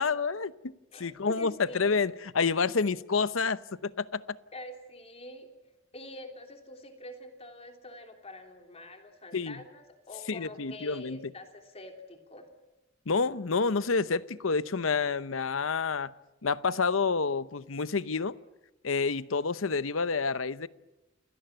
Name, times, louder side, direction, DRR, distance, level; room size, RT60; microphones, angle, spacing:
voice 1, 0.0-0.7 1.0-4.4 9.3-9.6 10.3-11.2 13.1-16.1 16.4-18.4 18.8-20.7, left 4 dB, 75° left, 0.8 m, -29 dB
voice 2, 0.9-2.0 4.5-5.5 5.9-12.5, left 1 dB, 30° left, 3.3 m, -46 dB
28.5 x 17.5 x 9.0 m
head